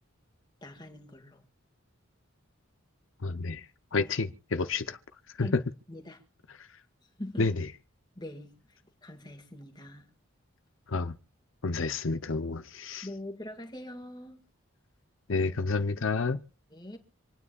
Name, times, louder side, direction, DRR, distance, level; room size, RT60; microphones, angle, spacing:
voice 1, 0.6-1.4 5.4-5.6 5.9-6.2 7.2-7.5 8.2-8.5 9.0-10.1 13.0-14.4 16.7-17.0, left 1 dB, 20° left, 1.9 m, -42 dB
voice 2, 3.2-3.7 3.9-5.0 5.4-5.6 7.4-7.7 10.9-11.1 11.6-13.1 15.3-16.4, left 3 dB, 70° left, 0.7 m, -29 dB
27.0 x 9.6 x 2.4 m
head